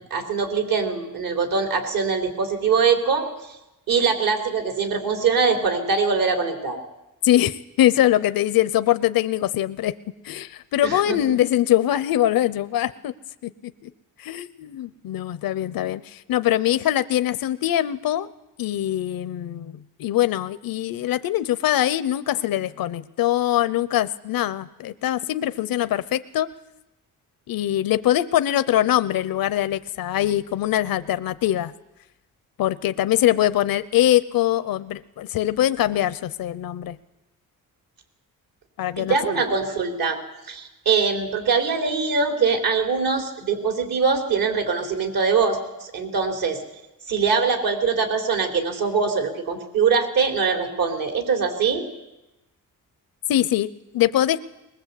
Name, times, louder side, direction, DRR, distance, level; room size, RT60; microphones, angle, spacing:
voice 1, 0.1-3.3 3.9-6.8 10.8-11.4 39.0-40.2 40.5-46.6 47.1-51.8, right 5 dB, 75° right, 5 dB, 3.8 m, -22 dB
voice 2, 7.2-9.9 10.2-13.1 13.4-13.9 14.2-18.3 18.6-26.5 27.5-31.7 32.6-37.0 38.8-39.4 53.3-54.4, left 13 dB, 85° left, 15 dB, 0.7 m, -23 dB
21.5 x 20.5 x 8.3 m, 0.96 s
cardioid pair, 110°, 34 cm